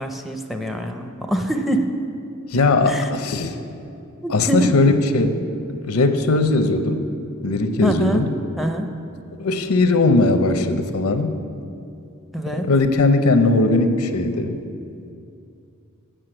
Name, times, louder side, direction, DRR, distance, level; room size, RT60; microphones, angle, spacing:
voice 1, 0.0-1.9 2.9-3.1 4.2-4.7 7.8-8.2 8.6-8.9 12.3-12.7, right 1 dB, ahead, 4 dB, 0.4 m, -24 dB
voice 2, 2.5-3.5 4.3-5.4 5.8-7.1 7.4-8.3 9.4-11.3 12.6-14.6, left 2 dB, 75° left, 8 dB, 0.6 m, -19 dB
7.6 x 6.3 x 7.7 m, 2.5 s
head